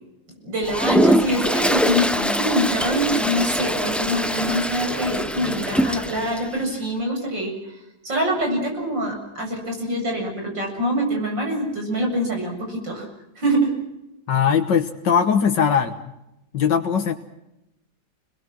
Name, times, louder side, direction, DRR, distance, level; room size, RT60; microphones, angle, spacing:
voice 1, 0.4-7.8 8.0-13.1 13.4-13.7, equal, 85° right, 1 dB, 8.3 m, -25 dB
Toilet flush, 0.6-6.4, equal, ahead, 0.8 m, -23 dB
voice 2, 14.3-16.2 16.5-17.1, left 7 dB, 80° left, 5 dB, 2.0 m, -20 dB
30.0 x 22.0 x 6.1 m, 0.90 s
omnidirectional pair, 1.9 m